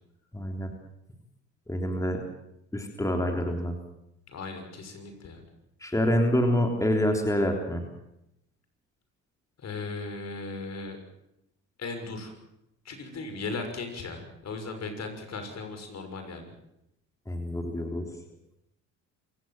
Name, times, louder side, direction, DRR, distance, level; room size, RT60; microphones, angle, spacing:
voice 1, 0.3-0.7 1.7-2.2 2.7-3.8 5.8-7.8 17.3-18.1, equal, 10° left, 3 dB, 3.5 m, -26 dB
voice 2, 4.3-5.4 9.6-11.0 11.8-12.3 12.8-16.5, left 3 dB, 55° left, 6 dB, 6.3 m, -37 dB
26.5 x 17.0 x 7.6 m, 0.83 s
supercardioid pair, 80°, 32 cm